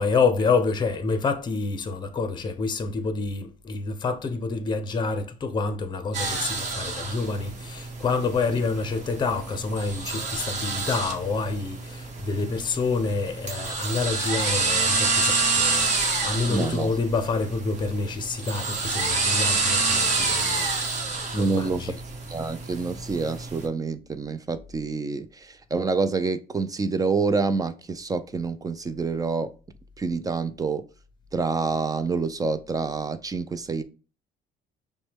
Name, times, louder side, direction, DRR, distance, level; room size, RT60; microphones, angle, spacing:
voice 1, 0.0-22.0, left 4 dB, 25° left, 0.7 m, -28 dB
sound 1, 6.1-23.6, right 3 dB, 45° right, 1.3 m, -28 dB
voice 2, 16.5-16.9 21.3-21.8 22.3-29.5 30.0-30.8 31.3-33.8, right 4 dB, 20° right, 0.4 m, -27 dB
5.9 x 2.2 x 3.4 m
cardioid pair, 110°, 17 cm